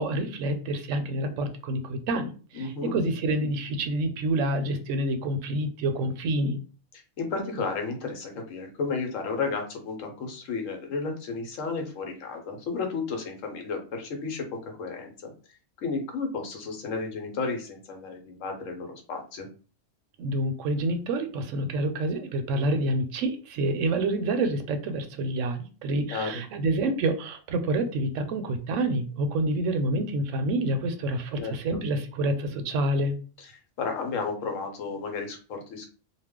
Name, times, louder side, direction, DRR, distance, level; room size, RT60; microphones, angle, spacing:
voice 1, 0.0-6.6 20.2-33.1, right 1 dB, 75° right, 7 dB, 0.9 m, -28 dB
voice 2, 2.5-2.9 7.2-15.3 15.8-19.5 26.1-26.4 31.4-31.5 33.4-33.5 33.8-35.9, left 4 dB, 85° left, 3 dB, 1.1 m, -33 dB
2.4 x 2.1 x 3.5 m, 0.37 s
omnidirectional pair, 1.3 m